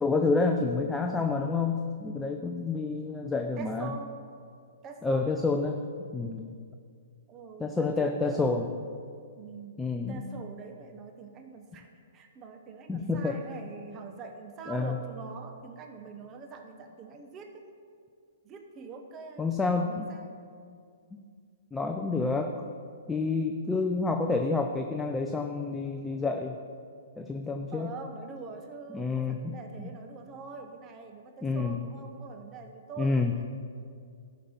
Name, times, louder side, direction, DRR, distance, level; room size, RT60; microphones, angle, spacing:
voice 1, 0.0-3.9 5.0-5.8 6.1-6.5 7.6-8.7 9.8-10.3 12.9-13.4 14.7-15.0 19.4-20.1 21.7-22.6 23.1-26.6 27.2-27.9 28.9-29.9 31.4-31.8 33.0-33.3, left 3 dB, 10° left, 3 dB, 0.5 m, -29 dB
voice 2, 3.6-4.2 4.8-5.4 7.3-8.5 9.3-17.6 18.4-20.3 27.7-33.5, right 4 dB, 25° right, 4 dB, 0.8 m, -44 dB
12.5 x 5.2 x 5.4 m, 2.2 s
hypercardioid pair, 130°, 0 cm